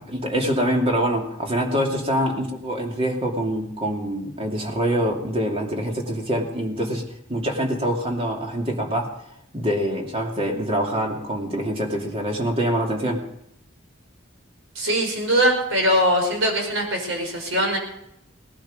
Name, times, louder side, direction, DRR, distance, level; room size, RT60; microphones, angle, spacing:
voice 1, 0.0-7.0 7.3-9.1 9.5-13.2, equal, 30° right, 1 dB, 2.6 m, -25 dB
voice 2, 14.8-17.8, equal, 65° right, 2 dB, 5.5 m, -21 dB
19.0 x 11.5 x 5.2 m, 0.77 s
head